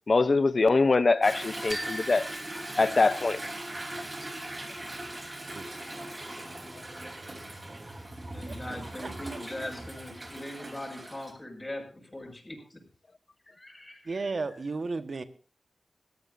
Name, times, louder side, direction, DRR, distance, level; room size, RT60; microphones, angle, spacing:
voice 1, 0.1-2.3 2.8-3.4, left 3 dB, 50° left, 0.8 m, -23 dB
Toilet flush / Drip / Trickle dribble, 1.2-11.3, right 1 dB, 30° right, 3.7 m, -40 dB
sound 1, 1.7-3.6, equal, ahead, 1.4 m, -40 dB
voice 2, 7.1-7.6 8.4-9.7 14.0-15.2, right 3 dB, 55° right, 1.5 m, -36 dB
voice 3, 8.3-12.8 13.5-14.5, left 1 dB, 20° left, 6.4 m, -41 dB
22.0 x 14.5 x 2.7 m
wide cardioid pair, 70°, 0 cm